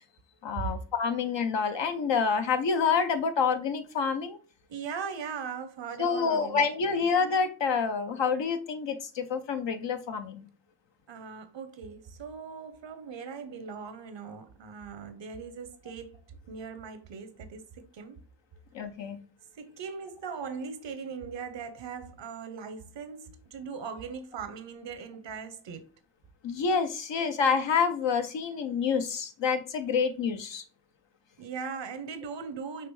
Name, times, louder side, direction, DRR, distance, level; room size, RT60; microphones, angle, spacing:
voice 1, 0.4-4.4 6.0-10.5 18.7-19.2 26.4-30.6, left 5 dB, 85° left, 0.7 m, -28 dB
voice 2, 4.7-6.6 6.9-7.1 11.1-16.2 16.5-18.2 19.6-25.9 31.4-32.9, right 6 dB, 85° right, 0.7 m, -39 dB
5.8 x 3.0 x 3.1 m
cardioid pair, 45°, 43 cm